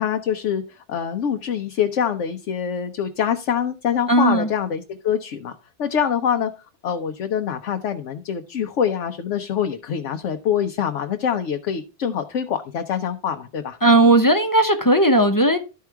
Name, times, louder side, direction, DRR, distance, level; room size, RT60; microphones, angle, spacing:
voice 1, 0.0-6.5 6.8-13.8, left 8 dB, 85° left, 1.1 m, -25 dB
voice 2, 4.1-4.5 13.8-15.6, right 1 dB, 20° left, 0.7 m, -16 dB
12.0 x 4.7 x 4.6 m
omnidirectional pair, 1.2 m